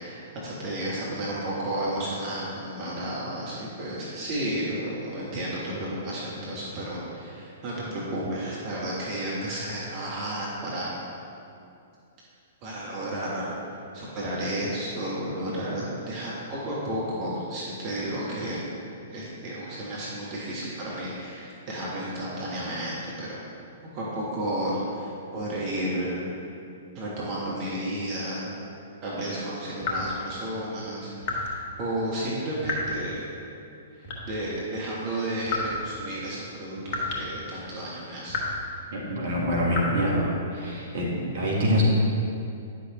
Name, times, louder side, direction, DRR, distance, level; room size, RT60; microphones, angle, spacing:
voice 1, 0.0-10.9 12.6-13.5 13.9-18.6 19.1-23.4 23.9-26.2 26.9-28.5 29.0-33.2 33.9-38.4, right 1 dB, 35° right, -6 dB, 1.4 m, -32 dB
sound 1, 29.8-30.1 31.2-31.5 32.6-33.0 34.0-34.5 35.5-35.8 36.9-37.3 37.6-37.7 38.3-38.7 39.7-39.8, left 3 dB, 45° left, 1.4 m, -30 dB
voice 2, 38.9-40.3 40.5-41.1 41.3-41.8, equal, 55° right, -4 dB, 1.6 m, -25 dB
9.8 x 6.1 x 3.1 m, 2.6 s
figure-of-eight pair, 110°, 0 cm